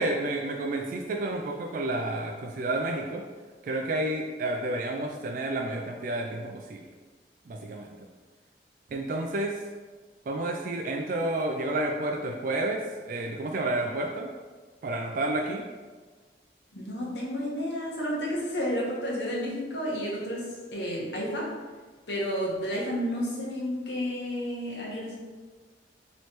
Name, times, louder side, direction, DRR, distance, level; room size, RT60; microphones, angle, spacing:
voice 1, 0.0-3.2 3.6-6.9 7.5-7.9 8.9-9.6 10.3-14.3 14.8-15.7, right 2 dB, 50° right, 1 dB, 0.3 m, -30 dB
voice 2, 16.7-21.5 22.1-25.2, equal, 80° left, -4 dB, 1.1 m, -31 dB
3.1 x 3.1 x 4.3 m, 1.4 s
head